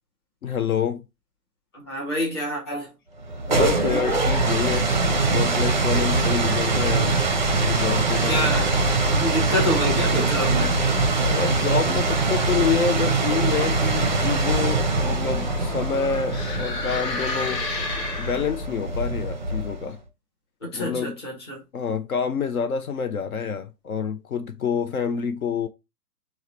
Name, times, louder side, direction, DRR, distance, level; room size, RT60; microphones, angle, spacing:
voice 1, 0.4-1.0 3.5-7.2 7.6-8.5 11.1-17.7 18.2-20.0 20.7-21.2 21.7-25.7, left 7 dB, 60° left, 0.5 m, -27 dB
voice 2, 1.7-2.9 8.2-8.7 9.1-10.8 20.6-21.6, left 1 dB, 15° left, 0.6 m, -27 dB
sound 1, 3.2-19.9, right 3 dB, 30° right, 0.5 m, -23 dB
sound 2, 14.5-18.8, left 3 dB, 80° left, 1.0 m, -32 dB
4.6 x 2.0 x 2.7 m
figure-of-eight pair, 130°, 49 cm